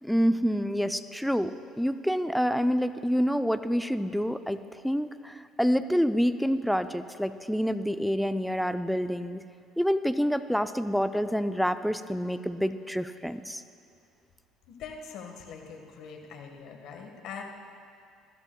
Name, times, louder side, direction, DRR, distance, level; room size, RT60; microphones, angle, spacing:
voice 1, 0.0-9.4 9.8-13.6, equal, ahead, 11 dB, 0.5 m, -27 dB
voice 2, 14.7-17.4, left 6 dB, 60° left, 3 dB, 1.5 m, -43 dB
21.0 x 13.5 x 2.3 m, 2.4 s
hypercardioid pair, 60°, 0 cm